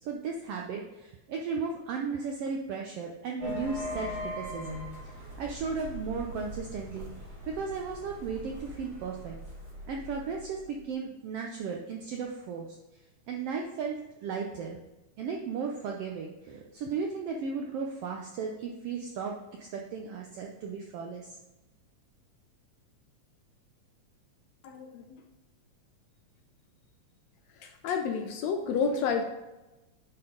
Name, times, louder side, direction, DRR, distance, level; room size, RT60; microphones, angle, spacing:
voice 1, 0.0-7.1 7.5-9.4 9.9-12.7 13.3-14.0 14.2-14.8 15.2-21.4, right 5 dB, 80° right, 1 dB, 1.3 m, -35 dB
sound 1, 3.4-10.8, left 1 dB, 35° right, 2.2 m, -41 dB
voice 2, 24.6-25.0 27.8-29.2, left 5 dB, 75° left, 5 dB, 1.6 m, -29 dB
9.5 x 4.3 x 3.8 m, 1.0 s
omnidirectional pair, 3.4 m